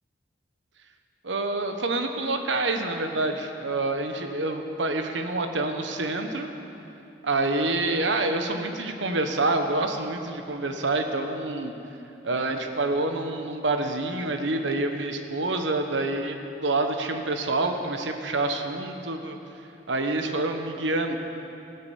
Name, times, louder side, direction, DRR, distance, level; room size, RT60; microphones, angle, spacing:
voice 1, 1.2-6.5 7.2-11.7 12.2-19.4 19.9-21.2, right 2 dB, 90° right, 6 dB, 1.2 m, -27 dB
16.0 x 6.7 x 8.6 m, 2.8 s
head